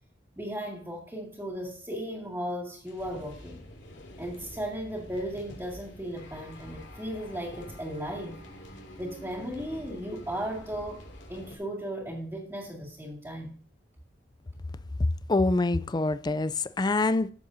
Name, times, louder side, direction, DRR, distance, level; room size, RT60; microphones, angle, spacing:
voice 1, 0.4-3.6 4.2-8.4 9.0-13.5, equal, 15° right, 2.4 m, -36 dB
sound 1, 2.9-11.5, left 1 dB, 75° left, 2.6 m, -47 dB
voice 2, 15.3-17.3, left 2 dB, 25° left, 0.4 m, -25 dB
14.5 x 7.6 x 2.7 m
head